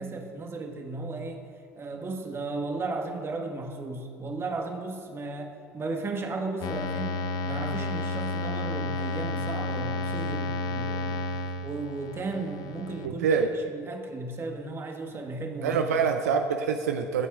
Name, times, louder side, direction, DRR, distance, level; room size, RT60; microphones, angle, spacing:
voice 1, 0.0-1.4 1.8-7.2 7.4-11.2 11.6-16.1, right 3 dB, 30° right, 3 dB, 1.5 m, -35 dB
sound 1, 6.6-13.1, left 3 dB, 50° left, 0.8 m, -31 dB
voice 2, 13.0-13.5 15.6-17.3, right 6 dB, 80° right, 6 dB, 0.5 m, -25 dB
22.0 x 8.2 x 2.5 m, 2.2 s
hypercardioid pair, 65°, 8 cm